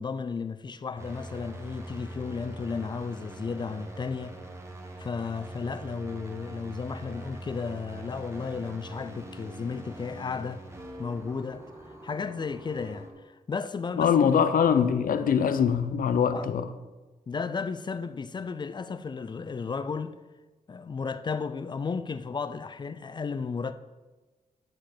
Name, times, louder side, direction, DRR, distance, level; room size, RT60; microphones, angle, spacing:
voice 1, 0.0-4.4 5.0-10.6 11.0-11.6 12.0-14.3 16.3-16.5 17.3-20.1 20.7-23.7, left 5 dB, 30° left, 0.4 m, -34 dB
sound 1, 1.0-13.1, right 1 dB, 20° right, 1.2 m, -43 dB
voice 2, 14.0-16.7, left 7 dB, 80° left, 0.7 m, -23 dB
10.0 x 5.2 x 6.0 m
wide cardioid pair, 155°, 14 cm